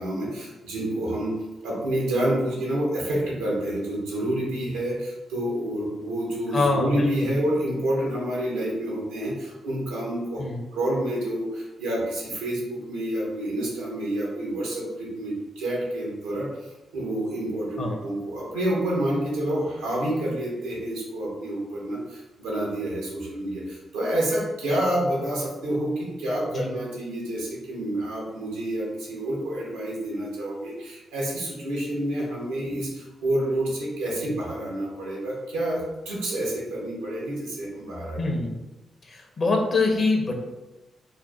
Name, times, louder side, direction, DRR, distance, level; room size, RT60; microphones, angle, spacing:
voice 1, 0.0-10.4 10.7-38.2, right 1 dB, 90° right, -4 dB, 1.1 m, -28 dB
voice 2, 6.5-7.3 10.4-10.6 17.8-18.0 26.5-26.7 38.2-38.5 39.1-40.3, left 3 dB, 50° left, 2 dB, 0.9 m, -24 dB
3.3 x 2.2 x 4.2 m, 1.1 s
hypercardioid pair, 45°, 0 cm